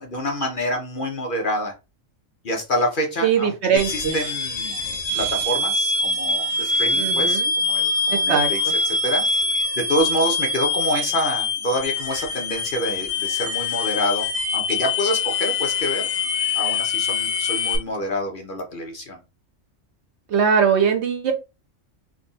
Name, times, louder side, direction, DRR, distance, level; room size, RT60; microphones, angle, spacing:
voice 1, 0.0-1.7 2.4-4.8 5.1-8.6 8.8-9.2 9.8-14.3 14.5-16.0 16.5-19.2, equal, 45° left, 1 dB, 0.9 m, -27 dB
voice 2, 3.2-4.1 7.0-7.5 8.1-8.5 20.3-21.3, right 7 dB, 60° right, 4 dB, 0.9 m, -20 dB
sound 1, 3.8-17.8, left 3 dB, 70° left, 1.4 m, -24 dB
3.6 x 2.3 x 3.9 m, 0.27 s
omnidirectional pair, 1.3 m